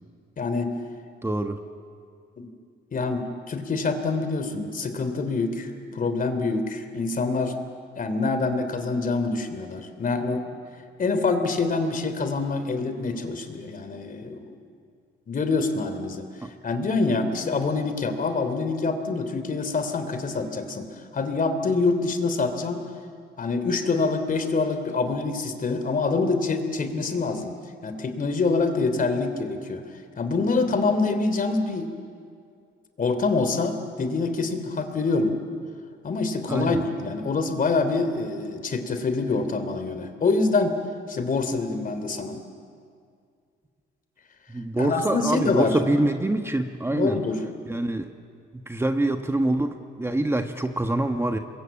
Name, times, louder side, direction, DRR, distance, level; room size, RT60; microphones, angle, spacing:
voice 1, 0.4-0.7 2.4-2.5 2.9-7.5 7.9-10.4 11.0-14.4 15.3-16.2 16.6-20.9 21.1-22.8 23.4-27.5 27.8-29.8 30.2-31.9 33.0-35.3 36.0-40.7 41.1-42.4 44.8-45.8 46.9-47.4, left 3 dB, 45° left, 8 dB, 3.1 m, -25 dB
voice 2, 1.2-1.6 16.4-16.5 36.5-36.8 44.5-47.2 47.7-48.1 48.5-51.4, right 1 dB, 10° right, 6 dB, 1.3 m, -25 dB
27.0 x 22.0 x 8.8 m, 2.2 s
cardioid pair, 90°, 20 cm